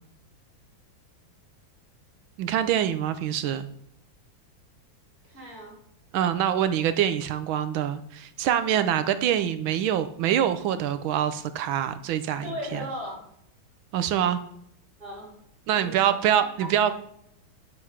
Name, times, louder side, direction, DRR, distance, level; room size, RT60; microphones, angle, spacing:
voice 1, 2.4-3.7 6.1-12.8 13.9-14.4 15.7-16.9, right 10 dB, 85° right, 11 dB, 1.5 m, -25 dB
voice 2, 5.2-5.8 12.4-13.2 15.0-15.3 15.7-16.1 16.6-16.7, equal, 45° right, -4 dB, 3.8 m, -37 dB
9.8 x 6.2 x 5.6 m, 0.73 s
omnidirectional pair, 2.2 m